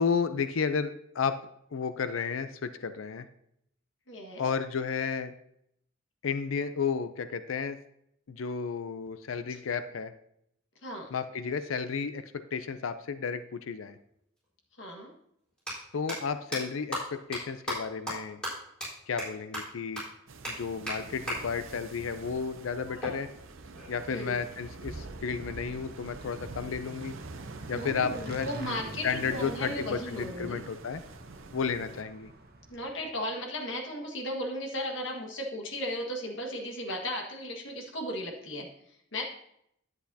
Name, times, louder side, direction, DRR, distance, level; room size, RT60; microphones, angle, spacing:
voice 1, 0.0-1.4 1.7-3.3 4.4-5.3 6.2-7.8 8.3-10.1 11.1-14.0 15.9-18.4 19.1-20.0 20.5-23.3 23.9-27.1 27.7-28.7 29.0-31.0 31.5-32.3, left 6 dB, 85° left, 11 dB, 0.5 m, -32 dB
voice 2, 4.1-4.4 9.5-9.6 10.8-11.1 14.8-15.1 22.9-23.2 24.1-24.4 27.7-30.7 32.7-38.7 39.1-39.3, equal, 70° left, 2 dB, 1.6 m, -36 dB
sound 1, 14.4-14.5 15.5-15.7 16.1-16.2 16.5-16.6 16.9-17.0 17.3-17.4 17.7-17.8 18.1-18.2 18.4-18.5 18.8-18.9 19.2-19.3 19.5-19.6 20.0-20.1 20.4-20.5 20.9-21.0 21.3-21.4 23.0-24.0, equal, 5° left, 4.0 m, -35 dB
sound 2, 20.3-32.0, right 3 dB, 80° right, 0.7 m, -45 dB
Motorcycle / Engine, 25.9-33.1, right 2 dB, 50° right, 1.0 m, -46 dB
10.5 x 8.1 x 2.8 m, 0.74 s
head